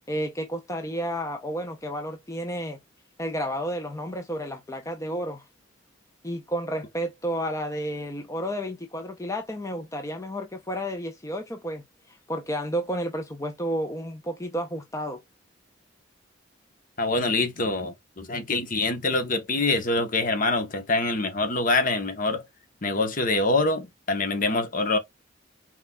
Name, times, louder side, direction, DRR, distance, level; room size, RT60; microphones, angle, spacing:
voice 1, 0.1-2.8 3.2-5.4 6.2-15.2, equal, 15° left, 0.6 m, -31 dB
voice 2, 17.0-22.4 22.8-25.0, left 2 dB, 45° left, 1.0 m, -25 dB
4.3 x 4.0 x 2.3 m
head